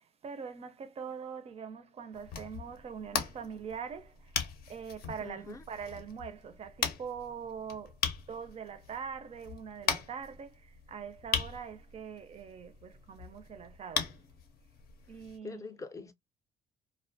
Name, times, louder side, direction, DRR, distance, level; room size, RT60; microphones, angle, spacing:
voice 1, 0.0-8.0 8.3-14.3 15.1-15.6, right 6 dB, 40° right, 0.4 m, -43 dB
sound 1, 2.1-15.4, left 7 dB, 65° left, 0.6 m, -39 dB
voice 2, 5.2-5.6 15.4-16.1, left 4 dB, 20° left, 0.4 m, -44 dB
2.4 x 2.1 x 2.5 m
cardioid pair, 110°, 17 cm